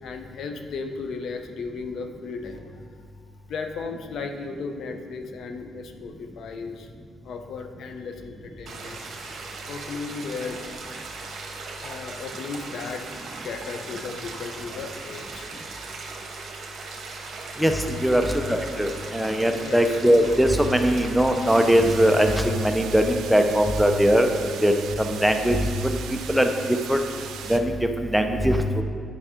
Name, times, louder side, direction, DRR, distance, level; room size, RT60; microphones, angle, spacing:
voice 1, 0.0-2.7 3.5-6.9 7.2-9.1 9.7-10.6 11.8-15.5 17.5-17.6 18.0-18.3 19.6-20.0, left 4 dB, 70° left, 6 dB, 0.7 m, -35 dB
sound 1, 8.7-22.4, right 3 dB, 60° right, 1.4 m, -38 dB
voice 2, 17.6-24.3 24.6-26.0 26.3-26.5 26.9-27.0 27.5-27.8 28.1-28.8, equal, ahead, 5 dB, 0.6 m, -21 dB
sound 2, 21.4-27.6, right 7 dB, 80° right, 0.6 m, -38 dB
9.8 x 5.4 x 3.7 m, 2.1 s
cardioid pair, 90°, 0 cm